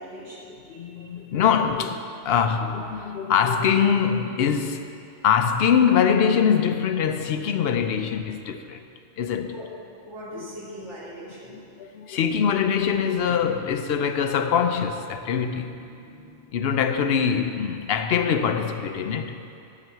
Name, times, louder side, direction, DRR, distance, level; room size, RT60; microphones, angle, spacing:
voice 1, 0.0-0.8 9.5-9.7 10.0-11.7 15.2-15.4 15.9-16.4, equal, 75° right, 2.3 m, -41 dB
voice 2, 0.7-4.9 5.2-8.8 9.2-9.6 10.3-10.5 11.5-15.8 16.5-19.4, left 7 dB, 65° left, 0.7 m, -23 dB
7.5 x 5.9 x 7.7 m
omnidirectional pair, 1.2 m